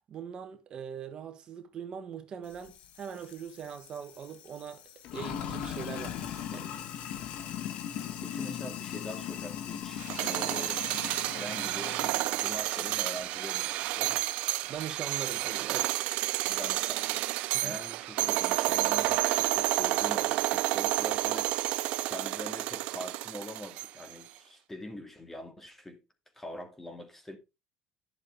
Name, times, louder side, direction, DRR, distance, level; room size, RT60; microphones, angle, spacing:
voice 1, 0.1-4.8 5.1-6.7 14.7-16.0 17.5-17.8, right 8 dB, 40° right, 1.2 m, -41 dB
Sink (filling or washing), 2.5-14.8, left 10 dB, 60° left, 1.6 m, -40 dB
voice 2, 8.2-10.8 11.3-12.0 12.3-14.3 16.4-26.0 26.4-27.4, left 1 dB, 10° left, 2.2 m, -43 dB
sound 1, 10.0-24.1, right 18 dB, 70° right, 0.5 m, -30 dB
11.5 x 6.7 x 3.3 m
supercardioid pair, 110°, 2 cm